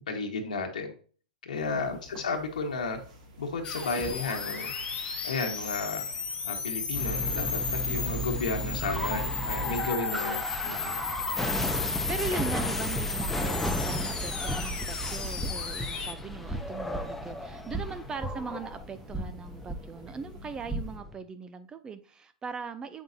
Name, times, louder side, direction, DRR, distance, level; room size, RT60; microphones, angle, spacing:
voice 1, 0.1-0.9 1.4-3.0 3.4-4.7 5.2-6.0 6.4-11.0, left 3 dB, 80° left, 2 dB, 1.3 m, -33 dB
sound 1, 1.5-21.0, left 2 dB, 60° right, 2.8 m, -52 dB
sound 2, 3.6-16.1, left 5 dB, 20° left, 1.1 m, -34 dB
sound 3, 6.9-21.1, equal, 5° left, 0.8 m, -34 dB
voice 2, 11.5-23.0, right 5 dB, 20° right, 11 dB, 0.5 m, -39 dB
7.9 x 5.3 x 2.7 m, 0.43 s
hypercardioid pair, 115°, 4 cm